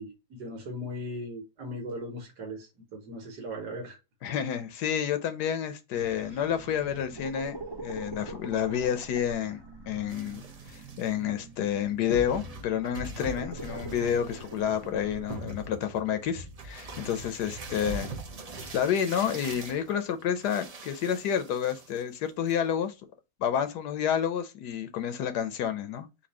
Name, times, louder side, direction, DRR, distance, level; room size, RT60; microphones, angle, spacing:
voice 1, 0.0-4.0, equal, 75° right, 1.6 m, -38 dB
voice 2, 4.2-9.6 9.9-10.4 10.7-18.1 18.7-22.9 23.4-26.1, left 9 dB, 75° left, 1.3 m, -29 dB
sound 1, 5.9-15.4, right 3 dB, 25° right, 0.6 m, -44 dB
sound 2, 10.1-11.1 11.8-11.9 12.1-22.2 22.5-22.8, right 2 dB, 60° right, 0.4 m, -42 dB
4.3 x 2.6 x 4.1 m
omnidirectional pair, 1.8 m